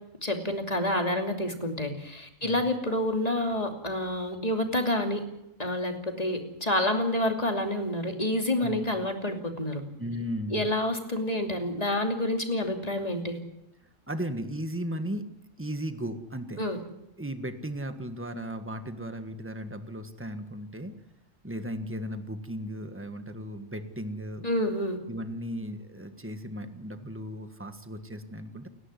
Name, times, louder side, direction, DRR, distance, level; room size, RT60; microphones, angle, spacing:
voice 1, 0.2-5.2 5.6-9.8 10.5-13.4 16.6-16.8 24.4-25.0, left 1 dB, 30° left, 3 dB, 2.9 m, -28 dB
voice 2, 10.0-10.7 14.1-15.3 15.6-16.6 17.2-20.9 21.4-24.5 25.1-28.7, equal, 10° right, 8 dB, 1.5 m, -36 dB
29.5 x 11.0 x 9.8 m, 0.85 s
omnidirectional pair, 1.3 m